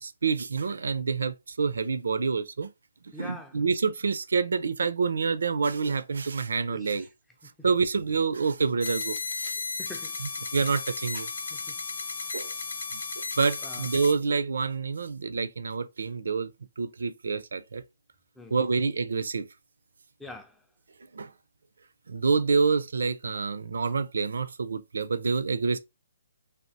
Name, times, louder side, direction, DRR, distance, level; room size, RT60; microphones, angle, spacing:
voice 1, 0.0-2.7 3.2-7.1 7.6-9.6 10.2-11.3 12.3-12.5 12.9-16.5 16.8-17.8 18.5-19.5 21.1-21.3 22.1-25.8, right 5 dB, 75° right, 0.4 m, -27 dB
voice 2, 3.1-3.6 6.7-7.1 7.4-7.5 9.8-10.2 11.5-11.8 12.3-12.4 13.6-13.9 18.4-18.7 20.2-20.6, left 2 dB, 5° left, 0.3 m, -45 dB
sound 1, 8.8-14.1, left 4 dB, 75° left, 0.6 m, -34 dB
3.3 x 2.4 x 2.7 m
hypercardioid pair, 160°, 0 cm